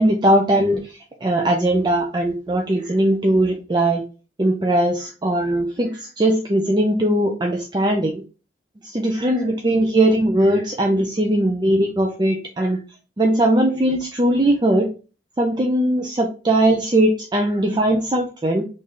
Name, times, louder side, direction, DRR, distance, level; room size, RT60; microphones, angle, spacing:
voice 1, 0.0-4.0 4.4-8.2 8.8-12.8 13.2-14.9 15.4-18.7, right 1 dB, 25° right, 1 dB, 0.5 m, -19 dB
3.2 x 2.7 x 3.7 m, 0.33 s
head